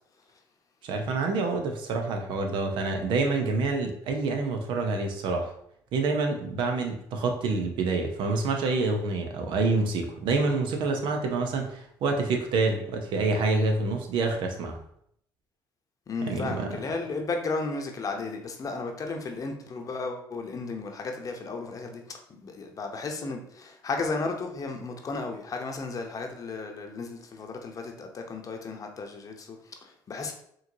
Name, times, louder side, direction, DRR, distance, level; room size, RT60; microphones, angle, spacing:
voice 1, 0.8-5.5 5.9-14.8 16.3-16.7, right 3 dB, 70° right, 0.7 m, -27 dB
voice 2, 16.1-30.3, left 3 dB, 45° left, 0.8 m, -34 dB
4.8 x 3.1 x 2.8 m
supercardioid pair, 70°, 8 cm